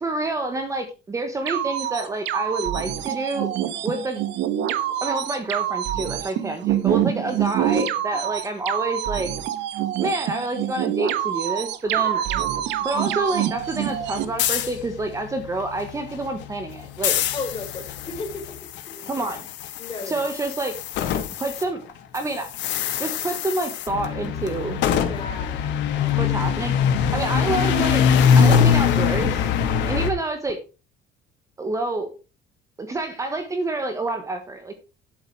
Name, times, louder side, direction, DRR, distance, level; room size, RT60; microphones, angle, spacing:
voice 1, 0.0-3.5 3.8-4.2 5.0-9.3 10.0-12.2 12.8-17.2 19.1-19.4 20.0-20.8 21.4-21.8 22.1-22.5 23.0-24.8 26.1-26.7 27.1-28.0 28.4-29.5 29.8-30.6 31.6-32.1 32.8-34.7, right 2 dB, 15° right, 7 dB, 1.3 m, -28 dB
sound 1, 1.5-14.2, right 11 dB, 80° right, 1.4 m, -26 dB
voice 2, 11.9-12.5 12.9-13.0 17.3-18.6 18.9-19.3 19.8-20.3 25.1-25.6 25.9-26.3 29.6-30.1, left 3 dB, 25° left, 4 dB, 4.1 m, -36 dB
sound 2, 13.6-21.6 21.9-30.1, left 7 dB, 80° left, 2.4 m, -23 dB
11.0 x 8.2 x 4.7 m, 0.32 s
cardioid pair, 160°, 18 cm